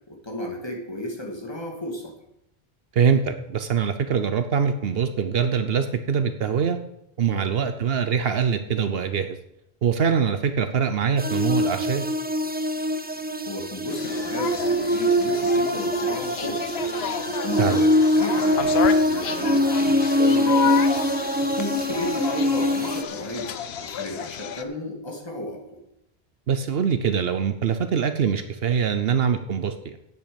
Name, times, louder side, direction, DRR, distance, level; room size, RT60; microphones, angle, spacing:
voice 1, 0.1-2.1 7.3-7.5 13.3-16.9 17.4-18.8 19.1-25.8, left 1 dB, 25° left, 0 dB, 2.4 m, -34 dB
voice 2, 2.9-6.8 7.2-9.4 9.8-12.1 17.6-17.8 26.5-30.0, right 7 dB, 70° right, 9 dB, 1.0 m, -23 dB
sound 1, 11.2-23.0, left 1 dB, 10° right, 0.5 m, -23 dB
sound 2, 13.9-24.6, left 8 dB, 80° left, 1.0 m, -31 dB
9.1 x 8.1 x 7.0 m, 0.81 s
omnidirectional pair, 1.0 m